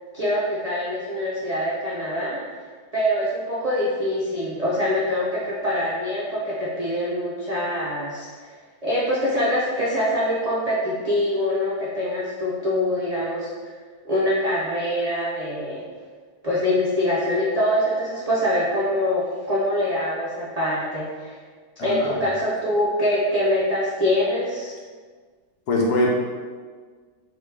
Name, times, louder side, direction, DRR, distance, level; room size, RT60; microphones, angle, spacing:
voice 1, 0.1-2.4 2.9-8.5 8.8-13.7 14.0-15.8 16.4-21.4 21.8-24.8, left 1 dB, 60° right, -7 dB, 0.4 m, -24 dB
voice 2, 21.8-22.1 25.7-26.1, left 2 dB, 75° left, -2 dB, 1.4 m, -22 dB
4.0 x 3.5 x 3.3 m, 1.5 s
omnidirectional pair, 1.7 m